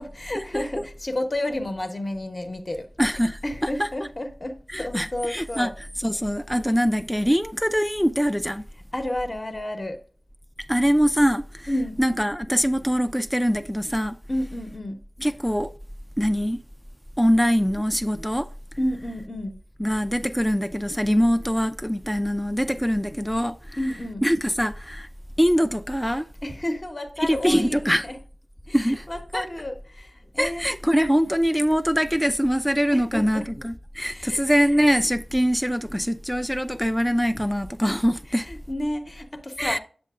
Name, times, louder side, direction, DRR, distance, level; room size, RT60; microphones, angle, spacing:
voice 1, 0.0-2.9 3.4-5.7 8.9-10.0 11.7-12.0 14.3-15.0 18.8-19.6 23.8-24.2 26.4-28.2 28.7-30.6 32.9-33.5 34.1-34.4 38.3-39.8, left 1 dB, 35° left, 1.0 m, -31 dB
voice 2, 3.0-3.9 4.7-5.7 6.0-8.6 10.7-11.7 12.0-14.2 15.2-15.7 16.2-16.6 17.2-18.5 19.8-23.8 24.2-25.1 25.4-26.3 27.2-28.1 28.7-29.1 29.3-29.5 30.4-38.5 39.6-39.8, equal, ahead, 0.4 m, -23 dB
7.5 x 7.5 x 2.4 m
cardioid pair, 45°, 0 cm